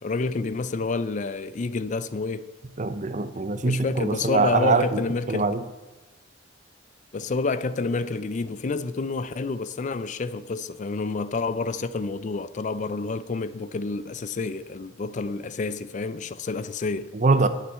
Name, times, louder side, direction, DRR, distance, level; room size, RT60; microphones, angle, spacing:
voice 1, 0.0-2.5 3.7-5.4 7.1-17.1, left 3 dB, 40° left, 0.4 m, -29 dB
voice 2, 2.8-5.0 5.3-5.6 17.1-17.5, right 3 dB, 40° right, 0.7 m, -23 dB
9.1 x 6.6 x 8.1 m
head